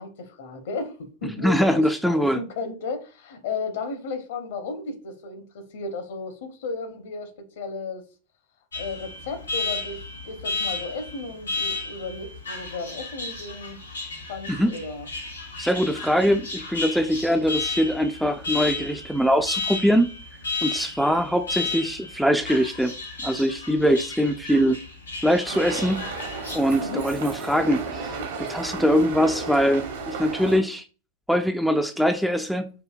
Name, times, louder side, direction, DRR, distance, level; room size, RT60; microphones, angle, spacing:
voice 1, 0.0-8.0 8.7-13.8 14.3-15.1 26.8-27.0, left 3 dB, 55° left, 0.8 m, -34 dB
voice 2, 1.4-2.4 14.5-14.7 15.6-20.1 20.6-22.9 23.2-24.8 25.2-26.0 26.5-30.8 31.3-32.7, equal, ahead, 0.3 m, -22 dB
Alarm, 8.7-26.6, left 3 dB, 75° left, 1.5 m, -33 dB
sound 1, 25.4-30.6, right 4 dB, 55° right, 0.9 m, -33 dB
4.8 x 2.7 x 2.3 m
figure-of-eight pair, 90°, 0 cm